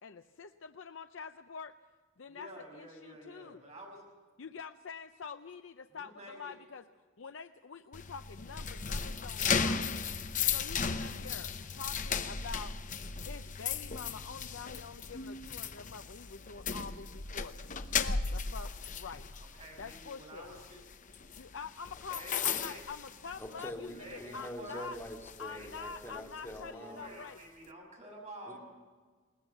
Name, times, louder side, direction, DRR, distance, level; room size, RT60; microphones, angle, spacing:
voice 1, 0.0-1.8 2.2-3.6 4.4-6.9 7.2-9.9 10.5-12.7 13.2-17.6 17.9-18.7 18.9-19.2 19.8-20.5 21.4-25.0 25.4-27.4, left 5 dB, 80° left, 8 dB, 0.6 m, -46 dB
voice 2, 2.3-4.0 5.9-6.5 19.4-20.8 22.1-22.8 23.9-24.9 25.4-28.6, right 1 dB, 35° right, 0 dB, 6.3 m, -50 dB
sound 1, 7.9-23.9 24.2-24.5 24.9-26.6, left 6 dB, 40° left, 0.9 m, -36 dB
voice 3, 23.4-27.0 28.4-28.6, equal, 15° left, 0 dB, 2.9 m, -45 dB
21.0 x 18.5 x 7.2 m, 1.5 s
head